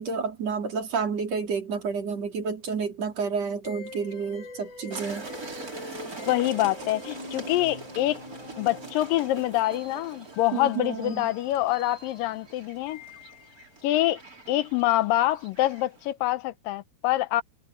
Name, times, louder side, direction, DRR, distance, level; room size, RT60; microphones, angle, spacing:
voice 1, 0.0-5.3 10.5-11.3, right 5 dB, 45° right, 3.7 m, -30 dB
sound 1, 3.6-13.8, left 3 dB, 55° left, 8.9 m, -45 dB
sound 2, 4.9-16.1, right 3 dB, 25° right, 3.6 m, -43 dB
voice 2, 6.2-8.2 8.6-13.0 13.8-14.2 14.5-17.4, left 15 dB, 75° left, 2.3 m, -25 dB
omnidirectional pair, 4.4 m